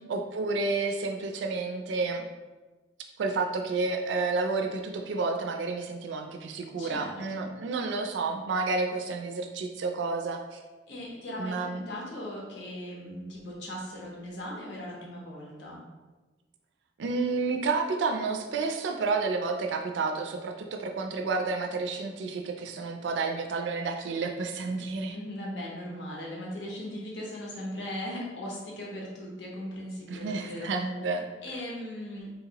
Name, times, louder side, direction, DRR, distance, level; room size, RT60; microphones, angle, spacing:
voice 1, 0.0-2.3 3.2-10.6 11.4-11.8 17.0-25.2 30.1-31.3, right 3 dB, 80° right, 4 dB, 0.3 m, -30 dB
voice 2, 6.8-7.5 10.9-15.9 25.1-30.7 31.4-32.3, left 1 dB, 75° left, -3 dB, 0.9 m, -38 dB
3.9 x 2.8 x 2.8 m, 1.2 s
head